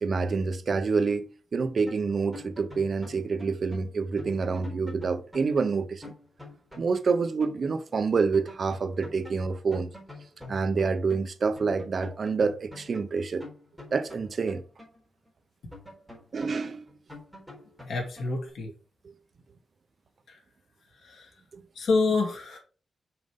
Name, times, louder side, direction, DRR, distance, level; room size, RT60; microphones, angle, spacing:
voice 1, 0.0-6.1 6.8-9.9 10.5-13.5 13.9-14.6 16.3-16.8 21.5-21.6, right 4 dB, 45° right, 0.8 m, -27 dB
sound 1, 1.8-7.6 7.9-8.0 8.3-11.3 11.6-15.3 15.7-18.5, left 2 dB, 5° left, 4.1 m, -47 dB
voice 2, 17.9-18.7 20.3-20.4 21.0-21.3 21.7-22.6, left 3 dB, 80° left, 2.5 m, -27 dB
5.8 x 5.3 x 5.1 m
wide cardioid pair, 150°, 0 cm